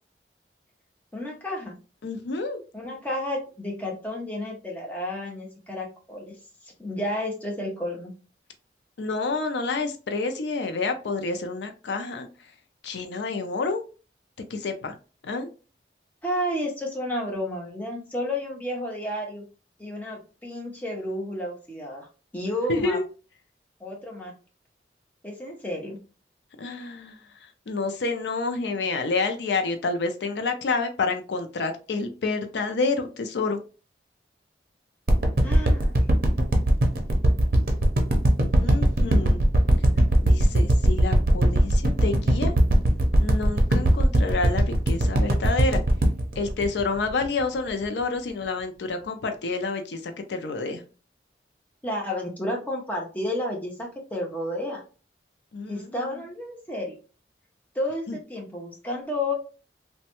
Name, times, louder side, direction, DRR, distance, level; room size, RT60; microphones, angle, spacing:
voice 1, 1.1-1.7 2.7-6.3 6.6-8.1 16.2-19.4 19.8-22.1 22.3-23.0 23.8-24.3 25.2-26.0 35.4-35.9 51.8-54.8 55.7-57.0 57.7-59.3, left 1 dB, 10° left, -1 dB, 0.7 m, -31 dB
voice 2, 2.0-2.6 9.0-12.3 12.8-13.8 14.5-15.0 15.2-15.5 22.7-23.1 26.6-33.6 38.6-39.4 40.2-42.5 43.2-45.8 46.4-50.8 55.5-56.1 58.1-58.2, left 3 dB, 75° left, 6 dB, 0.4 m, -29 dB
sound 1, 35.1-47.4 47.8-47.9, right 1 dB, 55° right, 0.6 m, -19 dB
3.0 x 2.2 x 2.9 m, 0.35 s
head